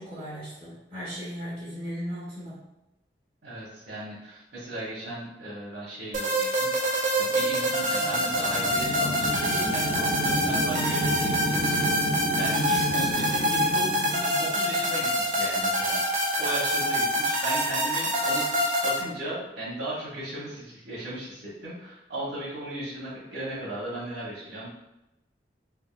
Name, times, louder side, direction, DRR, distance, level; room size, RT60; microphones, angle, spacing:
voice 1, 0.0-2.5 16.7-16.8, equal, 30° right, -12 dB, 1.3 m, -37 dB
voice 2, 3.4-12.1 12.3-16.0 16.4-18.6 18.8-24.7, right 1 dB, 80° right, -7 dB, 0.9 m, -36 dB
sound 1, 6.1-19.0, equal, 45° right, 0.4 m, -26 dB
sound 2, 7.5-15.2, equal, 80° left, 1.1 m, -31 dB
3.3 x 2.3 x 2.3 m, 0.92 s
head